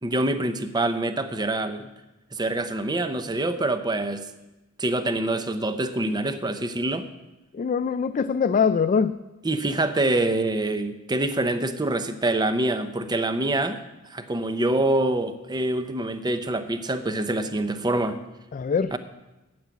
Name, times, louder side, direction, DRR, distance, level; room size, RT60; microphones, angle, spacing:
voice 1, 0.0-1.9 2.3-4.2 4.8-7.1 9.4-13.8 14.1-18.2 18.9-19.0, right 2 dB, 20° right, 10 dB, 0.7 m, -25 dB
voice 2, 7.5-9.2 18.5-18.9, left 6 dB, 35° left, 10 dB, 0.3 m, -23 dB
9.4 x 8.9 x 7.2 m, 1.0 s
head